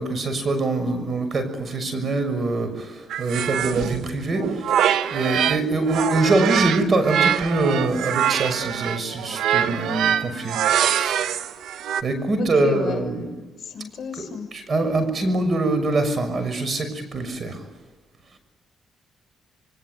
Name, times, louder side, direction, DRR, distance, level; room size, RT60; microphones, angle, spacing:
voice 1, 0.0-4.8 5.1-11.2 12.0-13.3 14.2-14.3 14.5-17.6, right 2 dB, 45° right, 10 dB, 6.3 m, -24 dB
sound 1, 3.1-5.6 5.9-12.0, right 9 dB, 75° right, 1.2 m, -24 dB
voice 2, 12.6-13.0 13.6-14.5, left 7 dB, 55° left, 6 dB, 6.8 m, -31 dB
26.5 x 23.5 x 9.5 m, 1.3 s
cardioid pair, 80°, 0 cm